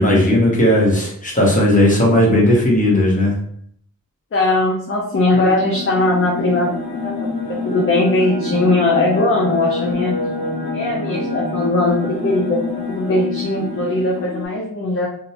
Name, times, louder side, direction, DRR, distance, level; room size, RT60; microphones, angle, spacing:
voice 1, 0.0-3.4, left 1 dB, 20° left, -4 dB, 0.9 m, -15 dB
voice 2, 4.3-10.2 10.7-15.1, left 2 dB, 35° left, -3 dB, 0.5 m, -19 dB
sound 1, 5.3-14.5, left 3 dB, 85° left, 0.6 m, -26 dB
2.5 x 2.0 x 2.8 m, 0.66 s
wide cardioid pair, 85°, 36 cm